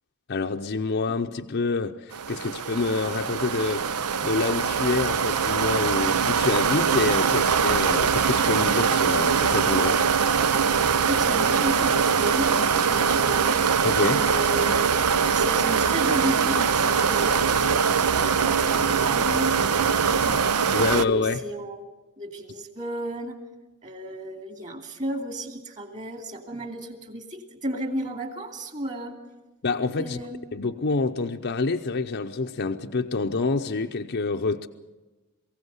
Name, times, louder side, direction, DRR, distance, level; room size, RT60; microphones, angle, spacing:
voice 1, 0.3-3.9 4.2-10.0 13.8-14.2 20.7-21.4 29.6-30.2 30.5-34.7, left 3 dB, 50° left, 4 dB, 0.7 m, -27 dB
sound 1, 2.1-21.0, right 6 dB, 90° right, 0.7 m, -22 dB
voice 2, 10.7-13.8 14.1-15.0 15.3-20.5 20.9-21.8 22.2-23.4 23.8-29.2 30.0-30.4, right 1 dB, 35° right, 5 dB, 2.5 m, -33 dB
23.0 x 16.5 x 8.1 m, 1.2 s
head